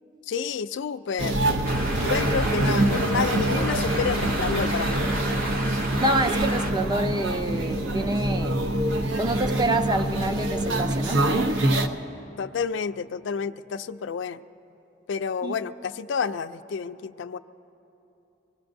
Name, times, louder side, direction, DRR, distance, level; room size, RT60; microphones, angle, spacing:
voice 1, 0.3-1.4 2.0-5.0 12.4-14.4 15.1-17.4, left 6 dB, 70° left, 12 dB, 0.4 m, -29 dB
sound 1, 1.2-11.9, right 1 dB, 75° right, 0.7 m, -25 dB
sound 2, 1.6-6.7, right 1 dB, 50° right, 1.4 m, -32 dB
voice 2, 6.0-8.6 9.2-11.5 15.4-15.5, right 1 dB, 20° right, 8 dB, 0.4 m, -27 dB
25.0 x 19.5 x 2.6 m, 3.0 s
head